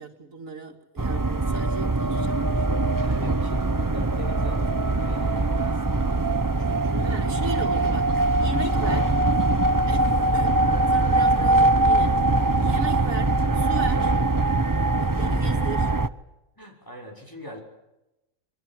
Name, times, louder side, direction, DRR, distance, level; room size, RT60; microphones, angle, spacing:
voice 1, 0.0-2.7 7.0-9.2 9.9-10.5 10.9-12.3 12.6-14.1 15.0-15.9, right 2 dB, 80° right, 5 dB, 2.7 m, -37 dB
sound 1, 1.0-16.1, right 2 dB, 20° right, 0.7 m, -22 dB
voice 2, 3.0-6.1 6.6-7.1 10.0-10.2 13.5-13.6 16.6-17.6, equal, 15° left, 1 dB, 5.9 m, -42 dB
27.0 x 23.5 x 7.6 m, 0.96 s
omnidirectional pair, 1.4 m